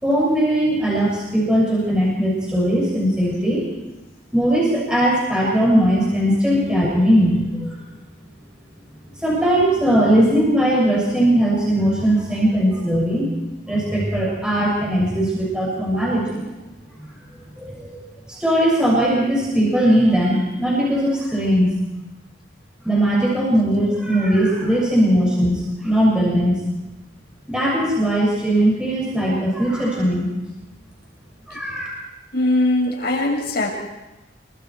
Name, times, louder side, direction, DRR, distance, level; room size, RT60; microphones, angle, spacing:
voice 1, 0.0-3.7 4.3-7.9 9.1-13.3 13.7-16.5 17.0-17.1 17.6-18.0 18.3-21.7 22.8-26.6 27.5-30.3 31.5-31.9, equal, 5° right, -5 dB, 6.3 m, -19 dB
voice 2, 32.3-33.7, left 2 dB, 55° left, 0 dB, 6.4 m, -20 dB
27.5 x 24.5 x 4.7 m, 1.1 s
head